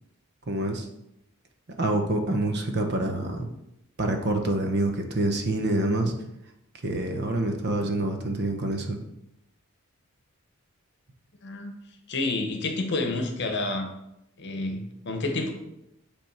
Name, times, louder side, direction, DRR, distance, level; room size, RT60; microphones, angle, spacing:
voice 1, 0.5-0.9 1.8-3.5 4.0-6.1 6.8-9.0, right 2 dB, 50° right, 4 dB, 0.9 m, -26 dB
voice 2, 11.4-11.7 12.1-13.9 14.4-15.5, left 2 dB, 55° left, 4 dB, 1.0 m, -29 dB
8.1 x 3.6 x 4.5 m, 0.85 s
head